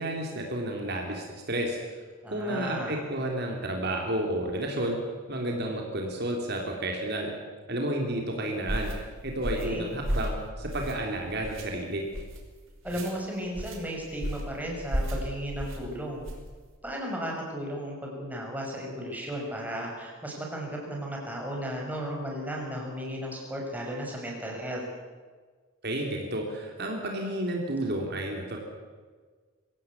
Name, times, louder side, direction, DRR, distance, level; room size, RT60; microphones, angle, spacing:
voice 1, 0.0-2.0 2.3-5.0 5.3-7.3 7.7-8.9 9.2-12.1 25.8-28.6, right 1 dB, 55° right, 1 dB, 3.6 m, -31 dB
voice 2, 2.2-3.0 9.6-9.9 12.8-16.3 16.8-24.8, equal, 10° right, -1 dB, 6.0 m, -35 dB
sound 1, 8.7-9.0 9.4-9.7 10.0-10.4 10.7-11.1 11.4-11.6 12.1-12.4 12.8-13.1 13.5-13.8 14.2-14.5 14.9-15.2 15.6-15.8 16.2-16.5, equal, 70° right, 5.2 m, -32 dB
24.5 x 17.0 x 8.4 m, 1.5 s
head